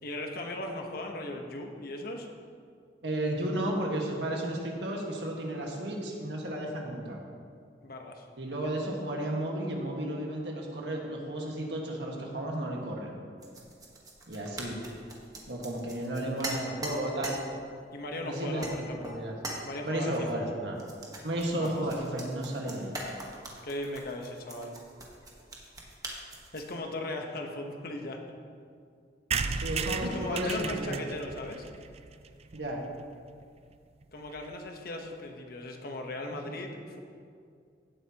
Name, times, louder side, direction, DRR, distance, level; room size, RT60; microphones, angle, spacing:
voice 1, 0.0-2.3 7.8-8.2 17.9-19.1 19.6-20.4 21.5-21.8 23.6-24.8 26.5-28.2 30.1-31.6 34.1-37.0, left 2 dB, 55° left, 2 dB, 1.1 m, -38 dB
voice 2, 3.0-7.2 8.4-13.2 14.3-14.8 15.5-17.4 18.2-19.3 19.8-20.8 21.2-23.0 29.5-31.0 32.5-32.8 36.5-36.6, right 1 dB, 75° right, -1 dB, 1.7 m, -33 dB
sound 1, 13.4-17.4 18.0-18.2 18.6-18.8 19.0-19.6 20.8-26.7, right 1 dB, 20° right, 1.4 m, -41 dB
sound 2, 29.3-33.0 33.4-33.5 33.7-33.8 34.0-34.1 34.3-34.6, right 5 dB, 35° right, 0.4 m, -35 dB
16.0 x 7.9 x 3.0 m, 2.2 s
head